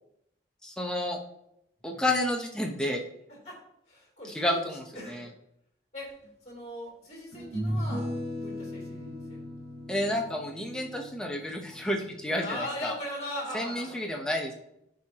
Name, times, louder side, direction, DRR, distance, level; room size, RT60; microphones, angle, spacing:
voice 1, 0.6-1.2 1.8-3.0 4.3-5.3 9.9-12.9 13.5-14.5, left 1 dB, 5° left, 0 dB, 0.9 m, -30 dB
voice 2, 3.9-4.4 4.9-5.2 5.9-6.1 6.4-8.0 8.3-9.4 12.4-14.0, left 1 dB, 35° left, -5 dB, 3.2 m, -39 dB
sound 1, 6.2-6.3 7.3-12.6, equal, 65° right, 1.9 m, -37 dB
11.0 x 4.7 x 3.0 m, 0.79 s
head